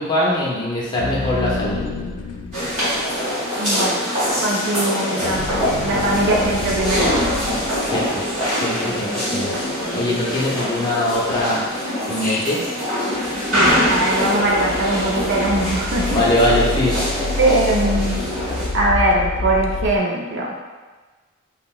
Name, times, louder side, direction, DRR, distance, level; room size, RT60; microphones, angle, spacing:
voice 1, 0.0-1.8 7.8-8.2 8.6-9.6 9.9-11.6 12.1-12.6 16.1-17.1, left 1 dB, 20° left, -5 dB, 0.5 m, -22 dB
sound 1, 1.0-3.2 4.2-8.5 10.2-10.3 11.0-11.1 12.2-12.7 13.4-20.0, left 2 dB, 90° left, 0.3 m, -29 dB
sound 2, 2.5-18.7, equal, 35° right, 1.4 m, -23 dB
voice 2, 3.6-4.0 4.4-5.5 5.8-7.1 13.5-16.2 17.4-18.3 18.7-20.5, right 1 dB, 55° right, -2 dB, 0.4 m, -21 dB
2.9 x 2.8 x 2.3 m, 1.3 s
head